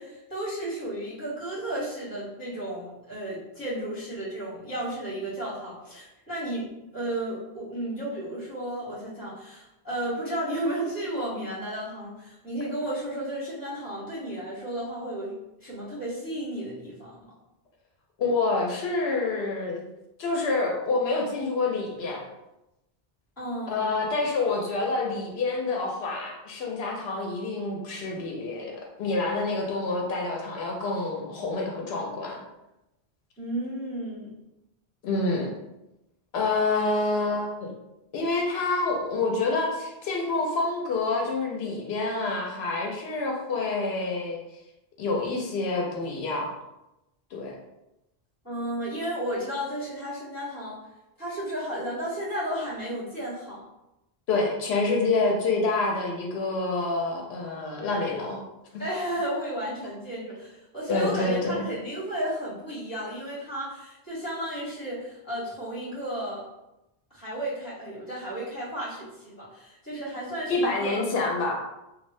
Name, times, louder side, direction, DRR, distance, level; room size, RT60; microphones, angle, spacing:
voice 1, 0.0-17.2 23.4-24.0 33.4-34.3 48.4-50.8 51.2-53.6 58.8-66.5 67.1-70.9, right 1 dB, 20° left, -10 dB, 1.5 m, -33 dB
voice 2, 18.2-19.8 20.2-22.3 23.7-32.4 35.0-35.5 36.3-37.7 38.1-44.4 45.0-46.5 47.3-47.6 54.3-58.4 58.7-58.8 60.9-61.6 70.5-71.6, left 3 dB, 90° left, 0 dB, 0.8 m, -27 dB
3.1 x 2.3 x 2.6 m, 0.93 s
omnidirectional pair, 1.0 m